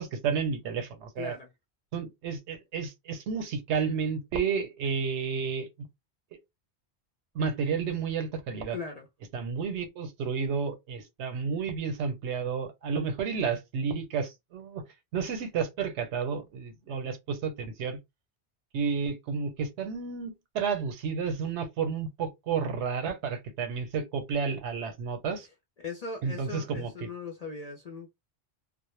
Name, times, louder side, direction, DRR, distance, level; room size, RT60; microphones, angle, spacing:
voice 1, 0.0-1.3 1.9-5.7 7.3-8.8 9.3-14.8 15.1-18.0 18.7-25.5 26.2-27.1, right 6 dB, 85° right, 0.9 m, -31 dB
voice 2, 1.2-1.5 8.7-9.1 25.8-28.1, left 4 dB, 50° left, 0.5 m, -39 dB
2.0 x 2.0 x 3.0 m
omnidirectional pair, 1.1 m